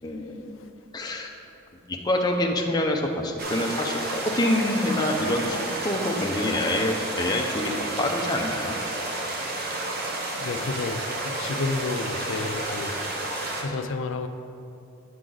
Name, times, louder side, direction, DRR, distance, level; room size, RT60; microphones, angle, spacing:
voice 1, 0.0-0.6 0.9-1.3 1.9-8.7, left 1 dB, 20° left, 0.5 m, -26 dB
sound 1, 3.4-13.6, right 2 dB, 50° right, 0.9 m, -31 dB
voice 2, 10.3-13.0 13.6-14.3, left 3 dB, 75° left, 0.5 m, -31 dB
8.5 x 6.1 x 3.9 m
head